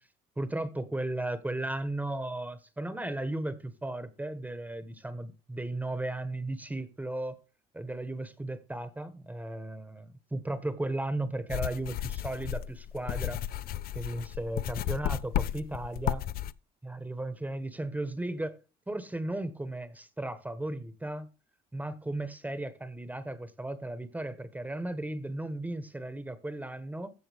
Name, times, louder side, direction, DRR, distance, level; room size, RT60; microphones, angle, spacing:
voice 1, 0.4-7.4 7.7-13.4 13.9-16.2 16.8-18.6 18.9-21.3 21.7-27.1, right 1 dB, 10° right, 1.2 m, -35 dB
sound 1, 11.5-16.5, left 12 dB, 60° left, 0.5 m, -33 dB
14.0 x 7.6 x 3.5 m
cardioid pair, 110°, 17 cm